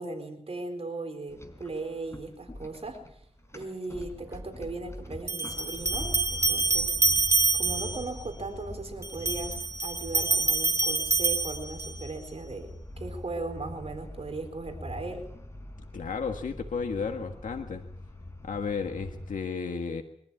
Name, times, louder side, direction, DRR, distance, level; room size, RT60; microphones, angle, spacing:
voice 1, 0.0-3.2 3.5-7.0 7.5-15.3, right 2 dB, 50° right, 5 dB, 4.1 m, -38 dB
sound 1, 1.3-19.4, left 1 dB, 20° left, 4.2 m, -43 dB
sound 2, 4.0-4.1 5.3-8.1 9.0-12.1, right 3 dB, 20° right, 1.3 m, -26 dB
voice 2, 15.9-17.8 18.4-20.0, left 5 dB, 90° left, 4 dB, 1.6 m, -33 dB
24.0 x 14.0 x 8.6 m, 0.69 s
wide cardioid pair, 80°, 13 cm